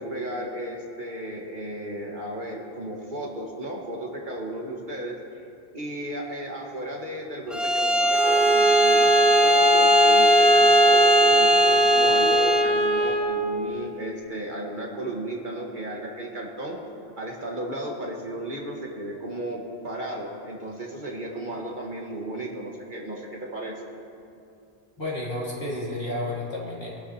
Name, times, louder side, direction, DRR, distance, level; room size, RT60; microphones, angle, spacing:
voice 1, 0.0-5.2 5.7-16.8 17.2-23.8, right 1 dB, 50° right, -1 dB, 1.7 m, -34 dB
Bowed string instrument, 7.5-12.7, right 1 dB, ahead, 0.3 m, -19 dB
Bowed string instrument 2, 8.1-13.3, right 1 dB, 30° left, 1.7 m, -22 dB
voice 2, 25.0-26.9, left 1 dB, 75° left, -6 dB, 3.4 m, -31 dB
22.5 x 11.5 x 2.9 m, 2.5 s
omnidirectional pair, 1.1 m